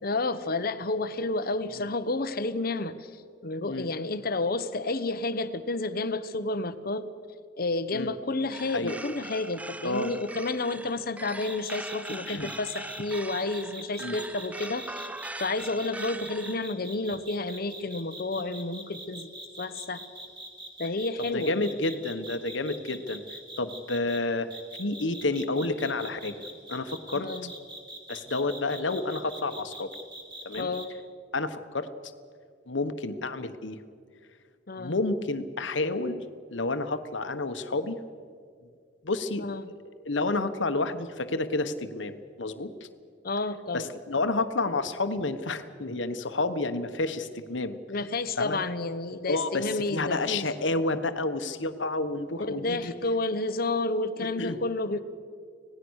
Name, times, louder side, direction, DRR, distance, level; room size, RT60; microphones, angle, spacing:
voice 1, 0.0-7.1 7.6-15.1 15.4-19.3 19.6-20.0 20.8-21.5 27.1-27.5 30.6-30.9 34.7-35.0 39.4-39.7 43.2-43.9 47.9-50.5 52.4-55.0, left 2 dB, 55° left, 12 dB, 1.0 m, -30 dB
sound 1, 8.5-16.6, right 2 dB, 10° right, 0.5 m, -41 dB
sound 2, 11.4-24.2 24.5-30.8, right 2 dB, 25° right, 2.8 m, -43 dB
voice 2, 21.3-24.5 24.8-26.4 26.7-27.3 28.1-29.9 30.4-30.7 31.3-31.9 32.7-33.8 34.8-36.2 36.5-38.0 39.0-39.4 40.0-42.7 43.7-47.8 48.4-48.6 49.3-52.9 54.4-54.6, left 2 dB, 80° left, 10 dB, 1.3 m, -30 dB
26.0 x 17.5 x 6.5 m, 2.2 s
head